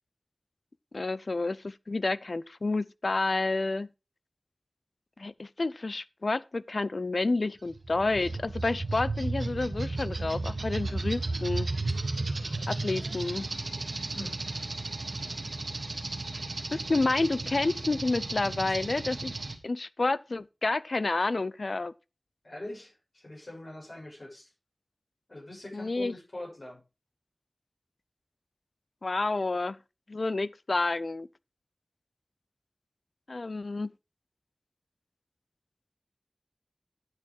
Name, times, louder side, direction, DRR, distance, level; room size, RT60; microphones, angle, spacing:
voice 1, 0.9-3.9 5.2-11.7 12.7-13.5 16.3-16.4 16.7-19.3 19.6-21.9 25.7-26.1 29.0-29.8 30.1-31.3 33.3-33.9, left 3 dB, 80° left, 0.5 m, -29 dB
sound 1, 7.7-19.6, right 2 dB, 85° right, 1.5 m, -34 dB
voice 2, 22.4-24.5 25.3-26.8, left 1 dB, 65° left, 7.0 m, -43 dB
11.0 x 6.6 x 4.8 m
wide cardioid pair, 50°, 0 cm